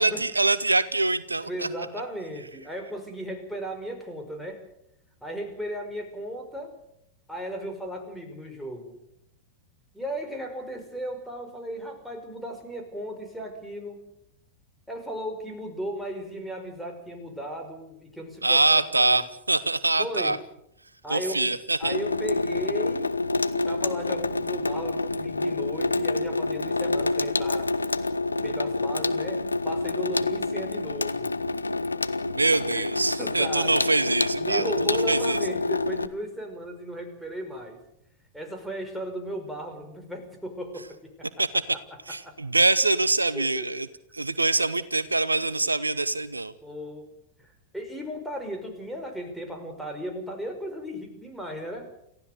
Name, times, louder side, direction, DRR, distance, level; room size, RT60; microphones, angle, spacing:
voice 1, 0.0-1.7 18.4-20.4 21.1-22.0 32.3-35.4 41.4-41.8 42.1-43.9 44.1-46.5, right 2 dB, 80° right, 17 dB, 0.8 m, -24 dB
voice 2, 1.4-4.6 5.2-6.8 7.3-9.0 9.9-14.1 14.9-19.2 20.0-20.4 21.0-23.1 23.7-27.7 28.4-31.3 32.7-32.9 33.2-33.8 34.4-37.8 38.3-41.3 42.2-42.3 43.4-43.7 46.6-47.1 47.4-51.9, equal, ahead, 2 dB, 5.3 m, -36 dB
Water tap faucet / Sink (filling or washing), 21.8-36.1, left 2 dB, 80° left, 0.9 m, -27 dB
28.5 x 15.5 x 6.8 m, 0.77 s
figure-of-eight pair, 90°, 0 cm